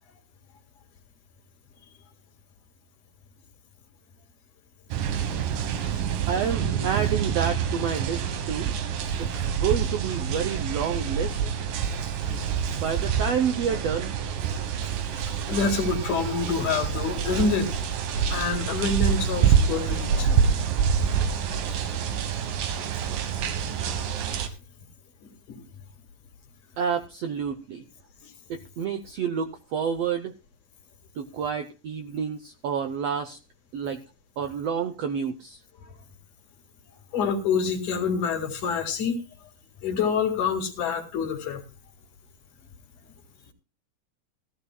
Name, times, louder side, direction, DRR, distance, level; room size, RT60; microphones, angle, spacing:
sound 1, 4.9-24.5, right 7 dB, 90° right, 3.0 m, -27 dB
voice 1, 6.3-8.7 9.2-11.4 12.7-14.2 26.8-27.8 28.5-30.3 31.2-33.4 33.7-34.0 34.4-35.6, right 7 dB, 75° right, 7 dB, 1.5 m, -29 dB
voice 2, 15.5-17.8 18.3-20.3 25.2-25.6 37.1-39.2 39.8-41.6, left 5 dB, 70° left, 5 dB, 3.3 m, -27 dB
16.5 x 14.5 x 2.3 m, 0.32 s
omnidirectional pair, 3.8 m